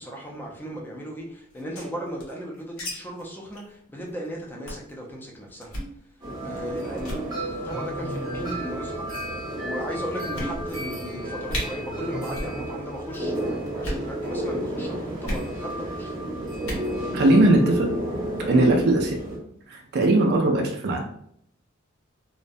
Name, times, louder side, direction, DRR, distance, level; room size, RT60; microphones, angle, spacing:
voice 1, 0.0-5.7 6.4-16.1 18.5-18.7, equal, 10° left, -1 dB, 0.5 m, -36 dB
sound 1, 1.5-2.9 3.2-3.3 3.5-3.7 4.1-4.3 4.7-4.9 5.6-5.9 6.5-6.7 7.0-7.2 8.1-8.6 9.3-9.4 9.8-9.9 10.3-10.9 11.2-11.3 11.5-11.6 12.3-12.6 12.8-13.2 13.7-14.1 15.2-15.5 16.5-16.9, equal, 85° left, 1.0 m, -33 dB
sound 2, 6.2-19.4, right 1 dB, 20° right, 0.8 m, -31 dB
voice 2, 17.1-17.9 18.4-19.1 19.7-21.2, right 2 dB, 50° right, 2 dB, 0.4 m, -20 dB
2.3 x 2.1 x 2.6 m, 0.68 s
head